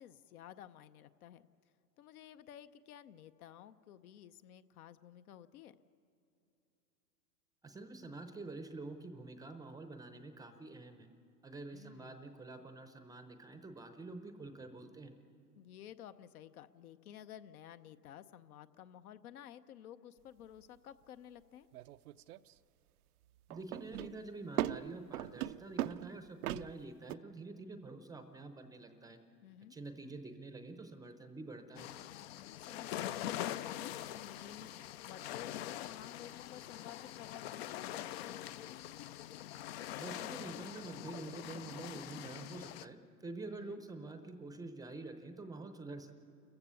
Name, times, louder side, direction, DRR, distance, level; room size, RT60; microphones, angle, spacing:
voice 1, 0.0-1.5 2.0-5.8 11.7-12.2 15.5-21.7 29.4-29.7 32.5-34.7 35.1-38.1 43.5-43.8, left 10 dB, 60° left, 12 dB, 0.9 m, -53 dB
voice 2, 7.6-11.1 11.4-15.1 23.5-29.2 29.7-31.9 39.9-46.2, right 3 dB, 10° right, 8 dB, 0.7 m, -47 dB
sound 1, 21.7-22.5 23.5-27.2, right 13 dB, 65° right, 0.6 m, -39 dB
sound 2, 31.8-42.9, left 12 dB, 40° left, 0.5 m, -44 dB
28.5 x 15.0 x 7.0 m, 2.7 s
hypercardioid pair, 120°, 50 cm